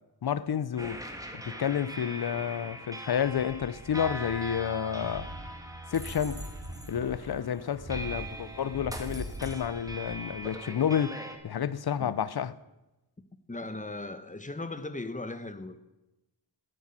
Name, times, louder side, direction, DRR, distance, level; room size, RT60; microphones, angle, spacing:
voice 1, 0.2-1.0 1.5-5.3 5.9-6.4 6.9-11.2 11.4-12.5, left 8 dB, 55° left, 0.7 m, -30 dB
sound 1, 0.8-11.4, right 1 dB, 10° right, 1.8 m, -41 dB
sound 2, 2.3-2.7 4.2-4.4 6.1-6.4 7.0-9.8, right 2 dB, 25° right, 2.5 m, -53 dB
sound 3, 3.1-4.6 4.8-10.2 10.5-10.6, right 1 dB, 50° right, 5.4 m, -43 dB
voice 2, 13.5-15.8, left 2 dB, 15° left, 1.1 m, -38 dB
10.0 x 9.3 x 8.9 m
wide cardioid pair, 80°, 44 cm